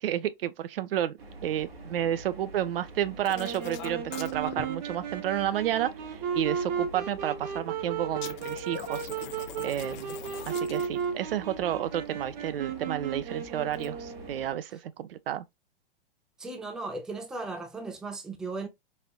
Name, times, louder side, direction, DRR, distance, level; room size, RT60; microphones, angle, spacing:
voice 1, 0.0-5.9 6.3-9.1 9.6-10.2 10.5-15.4, right 11 dB, 70° right, 0.5 m, -31 dB
sound 1, 1.2-14.5, right 2 dB, 90° right, 1.7 m, -47 dB
sound 2, 3.3-4.6 8.2-11.1 13.7-13.9, left 10 dB, 50° left, 0.7 m, -42 dB
Wind instrument woodwind instrument, 3.3-14.5, right 7 dB, 45° right, 0.9 m, -35 dB
voice 2, 16.4-18.7, right 3 dB, ahead, 0.4 m, -36 dB
4.2 x 2.6 x 2.3 m
hypercardioid pair, 120°, 30 cm